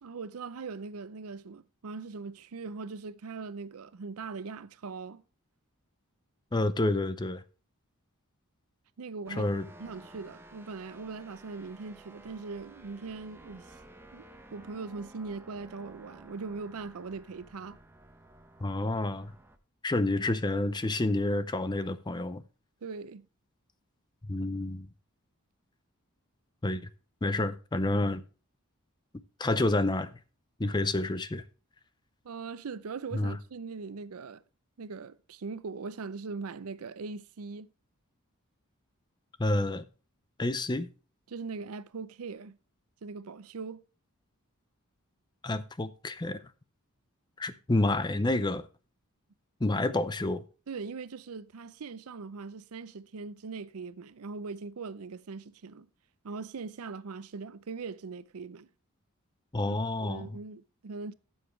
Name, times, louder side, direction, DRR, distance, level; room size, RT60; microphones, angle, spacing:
voice 1, 0.0-5.2 9.0-9.5 9.8-13.8 14.1-14.3 14.5-17.8 22.8-23.3 30.6-30.7 32.2-34.4 34.8-37.7 41.3-42.6 43.0-43.8 49.7-49.8 50.7-55.9 56.2-58.7 59.7-61.1, right 4 dB, 85° right, 0.5 m, -40 dB
voice 2, 6.5-7.4 9.3-9.7 18.6-19.3 19.8-22.4 24.3-24.9 26.6-26.9 27.2-28.2 29.4-30.1 30.6-31.4 33.1-33.4 39.4-39.8 40.4-40.9 45.4-46.4 47.4-48.7 49.6-50.4 59.5-60.4, left 2 dB, 20° left, 0.5 m, -29 dB
sound 1, 9.3-19.6, right 1 dB, 10° right, 0.8 m, -53 dB
13.0 x 7.3 x 3.2 m
head